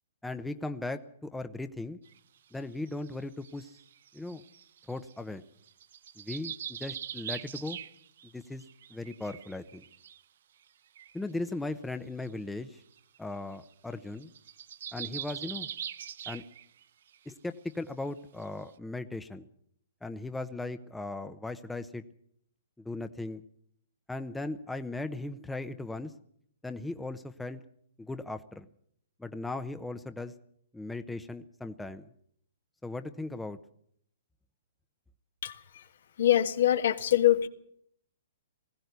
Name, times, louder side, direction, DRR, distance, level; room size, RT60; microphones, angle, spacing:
voice 1, 0.2-2.0 2.5-3.7 4.1-4.4 4.9-5.4 6.2-7.8 8.3-8.6 8.9-9.9 11.1-12.8 13.2-14.3 14.9-15.7 16.3-16.4 17.3-19.5 20.0-22.0 22.8-23.4 24.1-26.1 26.6-27.6 28.0-28.7 29.2-30.3 30.7-32.1 32.8-33.6, left 2 dB, 5° left, 9 dB, 0.9 m, -37 dB
sound 1, 2.0-2.2 2.9-5.2 5.7-8.3 8.6-10.2 10.7-10.8 11.0-11.2 12.2-12.3 12.6-12.7 13.0-13.2 13.5-13.7 13.9-16.8 17.1-17.3 17.7-17.8 18.4-18.5, right 9 dB, 65° right, 0.8 m, -42 dB
voice 2, 35.4-35.8 36.2-37.5, left 12 dB, 65° left, 9 dB, 1.7 m, -24 dB
20.0 x 16.0 x 8.2 m, 0.68 s
hypercardioid pair, 135°, 0 cm